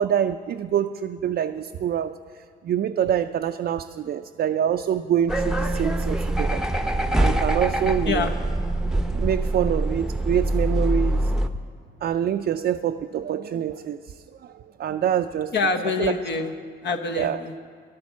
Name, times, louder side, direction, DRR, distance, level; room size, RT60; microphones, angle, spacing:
voice 1, 0.0-2.2 2.6-6.6 7.2-8.3 9.0-11.3 12.0-15.5 16.0-16.1 17.2-17.4, right 9 dB, 55° right, 6 dB, 0.5 m, -25 dB
sound 1, 5.3-11.5, right 1 dB, 5° right, 0.8 m, -24 dB
voice 2, 15.5-16.5 16.8-17.5, left 4 dB, 60° left, 5 dB, 1.1 m, -25 dB
14.0 x 11.0 x 7.3 m, 2.2 s
cardioid pair, 90°, 20 cm